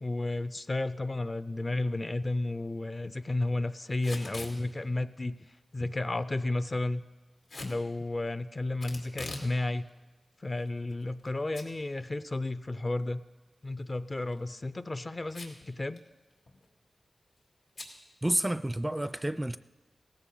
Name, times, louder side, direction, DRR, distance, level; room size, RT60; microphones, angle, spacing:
voice 1, 0.0-5.4 5.7-7.0 7.6-9.9 10.4-13.2 13.6-16.0, left 2 dB, 35° left, 0.5 m, -32 dB
Packing tape duct tape / Tearing, 3.9-4.6 7.5-7.8 8.8-9.5 9.9-10.0 10.7-11.3 11.5-11.7 12.1-12.2 14.1-14.4 15.3-15.7 16.0-16.1 16.3-16.7 17.8-17.9, left 2 dB, 80° left, 2.3 m, -42 dB
voice 2, 18.2-19.6, right 1 dB, 15° right, 0.4 m, -29 dB
17.5 x 14.5 x 3.9 m
cardioid pair, 60°, 0 cm